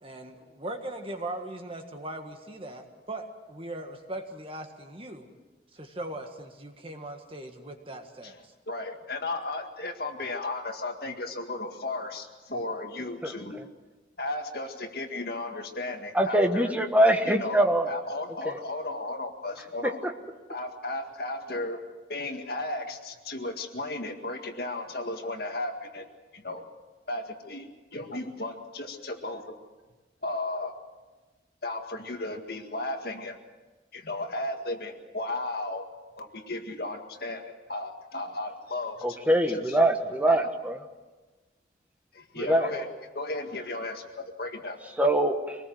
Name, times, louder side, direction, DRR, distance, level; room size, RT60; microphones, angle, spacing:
voice 1, 0.0-5.3 5.7-8.5, right 1 dB, 30° right, 4 dB, 1.7 m, -39 dB
voice 2, 8.7-13.6 14.2-16.8 17.2-17.6 17.9-20.0 20.5-21.8 22.1-26.1 26.3-26.7 27.1-29.6 30.2-30.7 31.6-33.4 33.9-35.9 36.2-39.2 39.5-39.8 40.3-40.5 42.1-44.8, left 2 dB, 55° left, 4 dB, 2.0 m, -35 dB
voice 3, 16.1-17.9 18.4-18.6 20.0-20.1 39.0-40.8 42.4-42.7 45.0-45.6, right 1 dB, 10° right, 4 dB, 1.4 m, -23 dB
25.0 x 19.5 x 7.8 m, 1.2 s
head